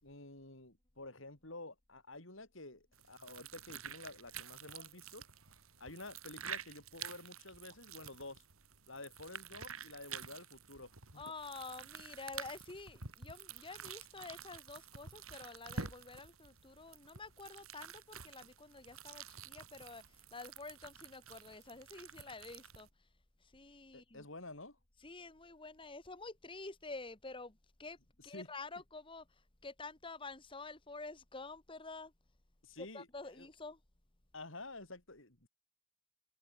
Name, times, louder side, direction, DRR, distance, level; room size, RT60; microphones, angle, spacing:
voice 1, 0.0-5.2 5.8-8.4 8.9-11.2 23.9-24.8 28.3-28.5 32.6-33.1 33.3-33.5 34.3-35.5, left 2 dB, 65° left, 6.4 m, -50 dB
sound 1, 2.9-22.9, right 6 dB, 90° right, 4.1 m, -50 dB
voice 2, 11.2-22.9 23.4-24.3 25.0-28.0 28.2-32.1 32.8-33.8, left 3 dB, 25° left, 1.6 m, -49 dB
head